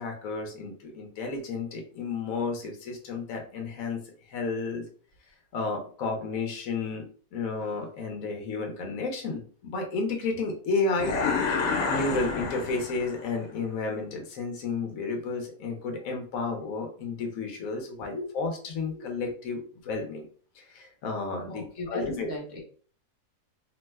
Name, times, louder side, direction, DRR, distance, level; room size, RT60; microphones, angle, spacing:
voice 1, 0.0-4.8 5.5-7.0 7.3-11.2 11.5-20.3 20.6-22.3, left 3 dB, 65° left, 3 dB, 1.0 m, -32 dB
sound 1, 11.0-13.3, left 4 dB, 80° left, 1.2 m, -29 dB
voice 2, 18.0-18.3 18.9-19.3 21.5-22.6, left 2 dB, 35° left, -2 dB, 0.9 m, -38 dB
2.9 x 2.1 x 3.3 m, 0.44 s
omnidirectional pair, 1.7 m